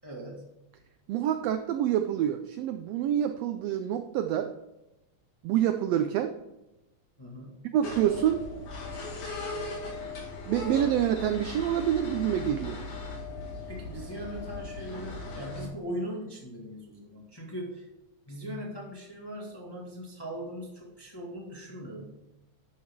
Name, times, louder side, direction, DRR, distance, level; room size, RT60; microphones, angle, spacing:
voice 1, 0.0-0.4 7.2-7.7 13.7-17.9 18.3-22.1, equal, 10° left, -2 dB, 1.1 m, -40 dB
voice 2, 1.1-4.5 5.4-6.3 7.7-8.4 10.5-12.8, right 10 dB, 80° right, 8 dB, 1.5 m, -27 dB
sound 1, 7.8-15.7, left 2 dB, 75° left, 3.6 m, -38 dB
11.5 x 6.3 x 3.6 m, 0.97 s
omnidirectional pair, 3.4 m